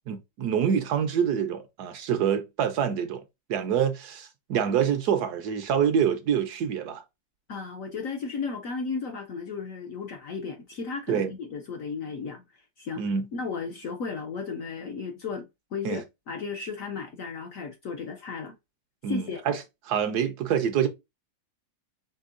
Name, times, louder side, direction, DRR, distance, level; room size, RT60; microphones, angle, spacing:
voice 1, 0.1-3.2 3.5-7.0 11.1-11.3 13.0-13.3 15.8-16.0 19.0-20.9, right 8 dB, 70° right, 1.1 m, -26 dB
voice 2, 7.5-12.4 12.8-18.5 19.1-19.4, left 5 dB, 65° left, 0.9 m, -34 dB
5.3 x 3.4 x 2.5 m
omnidirectional pair, 2.0 m